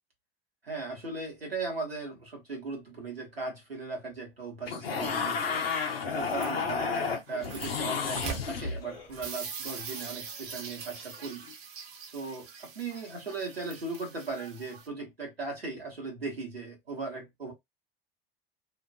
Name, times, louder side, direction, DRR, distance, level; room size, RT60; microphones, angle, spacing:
voice 1, 0.6-5.6 6.0-11.4 12.1-17.5, right 3 dB, 90° right, 1.0 m, -38 dB
sound 1, 4.6-9.1 11.3-11.5, left 5 dB, 80° left, 0.6 m, -32 dB
sound 2, 6.0-14.9, right 6 dB, 50° right, 0.8 m, -43 dB
2.5 x 2.2 x 2.2 m
figure-of-eight pair, 65°, 29 cm